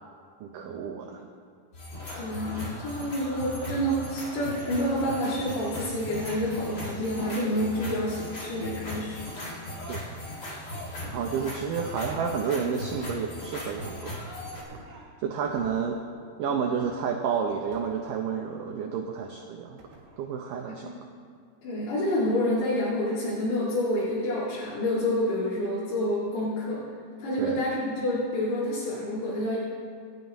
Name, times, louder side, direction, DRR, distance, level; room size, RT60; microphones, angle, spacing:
voice 1, 0.4-1.2 9.9-10.0 11.1-14.2 15.2-16.0 16.4-19.8 20.2-20.9 27.4-27.6, right 6 dB, 90° right, 2 dB, 1.9 m, -30 dB
sound 1, 1.7-14.6, left 1 dB, 35° left, 1.7 m, -38 dB
voice 2, 2.2-9.4 20.8-20.9 21.6-26.9 27.2-29.6, left 1 dB, 85° left, -9 dB, 4.5 m, -28 dB
sound 2, 11.0-11.4 12.1-12.3 12.8-13.0 13.7-14.1 14.6-15.1 15.4-15.8 16.8-17.1 17.7-18.5 19.8-20.3 20.6-20.7, right 3 dB, 70° right, 3.8 m, -47 dB
27.0 x 9.7 x 3.0 m, 2.2 s
omnidirectional pair, 4.9 m